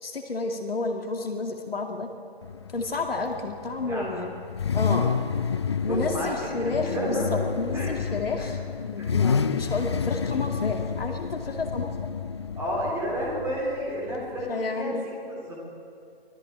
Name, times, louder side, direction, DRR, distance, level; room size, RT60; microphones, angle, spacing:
voice 1, 0.0-2.1 2.7-4.4 4.7-5.1 5.8-8.6 8.8-11.9 14.5-15.1, left 3 dB, 65° left, 3 dB, 2.3 m, -30 dB
Car / Idling / Accelerating revving vroom, 2.4-14.5, left 6 dB, 25° left, 0.6 m, -30 dB
voice 2, 3.9-4.2 5.8-7.4 7.7-8.0 8.4-8.5 9.0-9.1 12.5-15.0 15.3-15.6, equal, 10° right, -4 dB, 3.7 m, -31 dB
25.0 x 17.0 x 8.9 m, 2.4 s
figure-of-eight pair, 145°, 31 cm